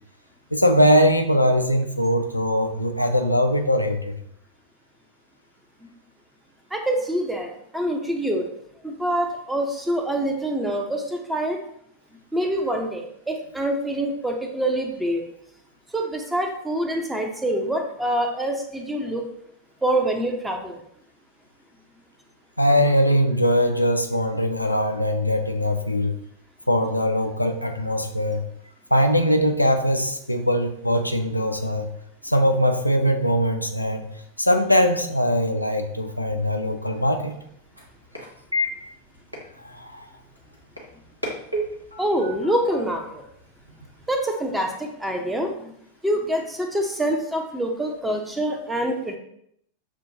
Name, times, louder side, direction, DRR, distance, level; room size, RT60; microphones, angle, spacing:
voice 1, 0.5-4.1 22.6-26.2 26.7-28.4 28.9-31.9 32.2-34.0 34.4-37.3 39.6-40.1, equal, 85° left, 5 dB, 0.4 m, -21 dB
voice 2, 6.7-8.5 8.8-11.6 12.3-15.2 15.9-19.3 19.8-20.8 42.0-43.2 44.1-45.7 46.0-49.2, right 1 dB, 5° right, 3 dB, 0.6 m, -25 dB
sound 1, 36.4-44.2, left 1 dB, 85° right, 0.8 m, -35 dB
6.1 x 2.2 x 2.7 m, 0.72 s
figure-of-eight pair, 90°, 0 cm